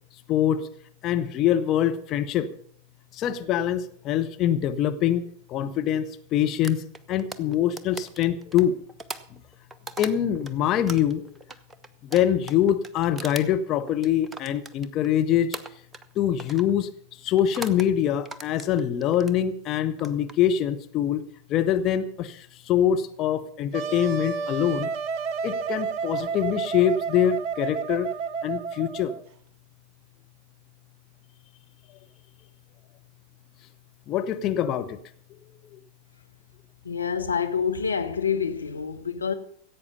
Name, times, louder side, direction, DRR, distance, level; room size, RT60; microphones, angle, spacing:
voice 1, 0.3-0.7 1.0-2.5 3.2-5.2 5.5-6.8 7.1-8.8 10.0-11.2 12.0-15.6 16.2-16.9 17.2-21.2 21.5-24.9 25.4-28.1 28.4-29.1 34.1-35.0, left 10 dB, 35° left, 1.0 m, -24 dB
sound 1, 6.6-10.5 10.9-15.1 15.5-16.1 16.4-16.7 17.4-17.9 18.2-19.4 19.9-20.3, right 2 dB, 15° right, 0.9 m, -39 dB
Wind instrument woodwind instrument, 23.7-29.2, right 5 dB, 40° right, 0.9 m, -30 dB
voice 2, 36.8-39.4, left 6 dB, 75° left, 0.9 m, -27 dB
16.0 x 8.5 x 6.8 m
figure-of-eight pair, 90°, 0 cm